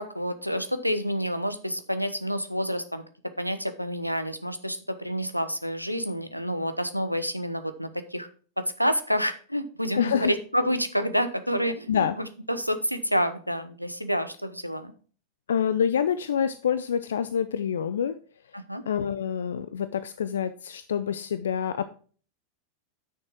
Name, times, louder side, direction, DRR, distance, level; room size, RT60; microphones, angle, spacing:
voice 1, 0.0-3.0 3.4-8.3 8.6-14.9 18.5-18.8, equal, 90° left, 11 dB, 0.9 m, -28 dB
voice 2, 10.0-10.3 11.9-12.2 15.5-18.2 18.9-21.9, left 8 dB, 65° left, 13 dB, 0.5 m, -26 dB
9.2 x 6.6 x 4.5 m, 0.41 s
figure-of-eight pair, 90°, 0 cm